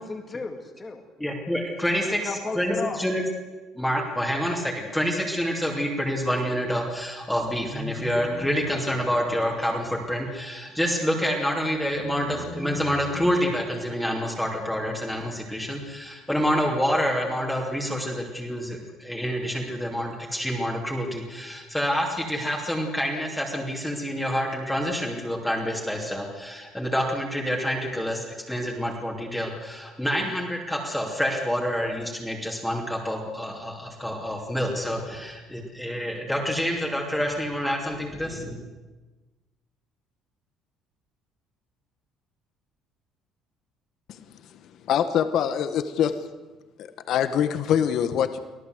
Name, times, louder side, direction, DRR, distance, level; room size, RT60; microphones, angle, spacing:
voice 1, 0.0-1.0 2.0-3.0, left 3 dB, 20° left, 5 dB, 2.0 m, -34 dB
voice 2, 1.2-3.2 3.7-38.6, equal, 5° left, -1 dB, 2.9 m, -27 dB
voice 3, 44.8-46.1 46.8-48.4, left 9 dB, 55° left, 10 dB, 1.3 m, -24 dB
25.0 x 17.0 x 8.0 m, 1.2 s
cardioid pair, 160°, 0 cm